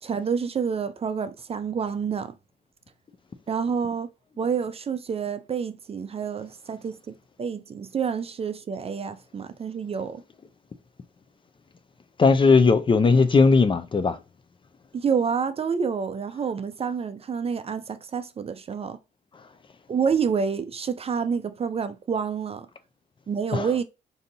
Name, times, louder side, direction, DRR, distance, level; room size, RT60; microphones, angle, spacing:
voice 1, 0.0-2.3 3.5-4.1 4.4-10.2 14.9-19.0 19.9-22.7 23.3-23.8, right 6 dB, 35° right, 0.4 m, -28 dB
voice 2, 12.2-14.2 23.5-23.7, left 4 dB, 30° left, 0.4 m, -18 dB
3.9 x 2.7 x 2.6 m
cardioid pair, 85°, 18 cm